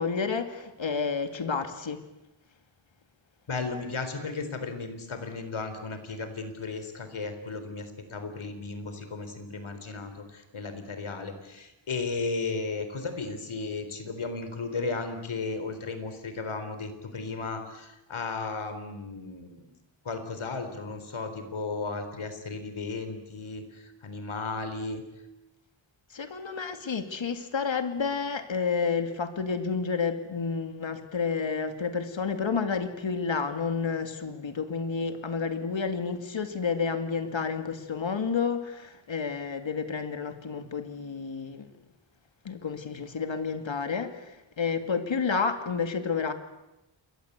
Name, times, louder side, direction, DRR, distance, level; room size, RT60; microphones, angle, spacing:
voice 1, 0.0-2.0 26.1-41.7 42.4-46.3, left 5 dB, 70° left, 8 dB, 2.5 m, -30 dB
voice 2, 3.5-19.7 20.0-25.0, left 3 dB, 85° left, 9 dB, 4.1 m, -35 dB
28.0 x 22.5 x 8.2 m, 0.94 s
wide cardioid pair, 85°, 47 cm